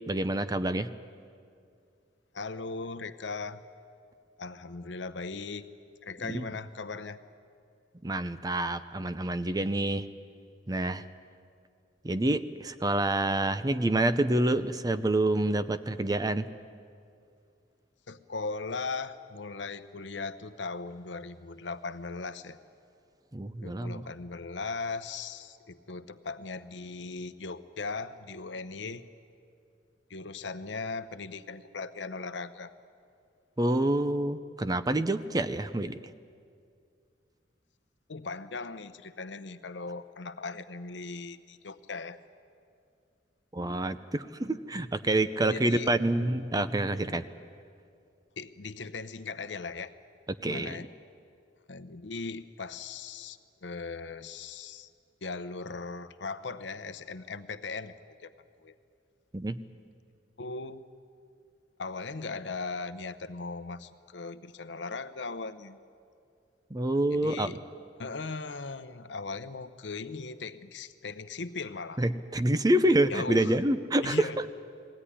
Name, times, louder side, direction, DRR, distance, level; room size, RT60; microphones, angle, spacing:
voice 1, 0.1-0.9 6.2-6.5 8.0-10.1 10.7-11.0 12.0-16.5 23.3-24.1 33.6-36.0 43.5-47.2 50.4-50.8 59.3-59.6 66.7-67.5 72.0-74.3, right 1 dB, 20° right, 12 dB, 0.6 m, -27 dB
voice 2, 2.3-3.6 4.4-5.7 6.0-7.2 18.1-22.6 23.6-29.1 30.1-32.7 38.1-42.2 45.4-45.9 48.4-49.9 50.4-50.9 51.7-54.9 55.2-58.3 58.6-58.8 60.4-60.8 61.8-65.8 67.1-67.6 68.0-72.0 73.1-73.6 74.0-74.4, left 4 dB, 80° left, 12 dB, 0.8 m, -38 dB
20.5 x 16.0 x 10.0 m, 2.4 s
head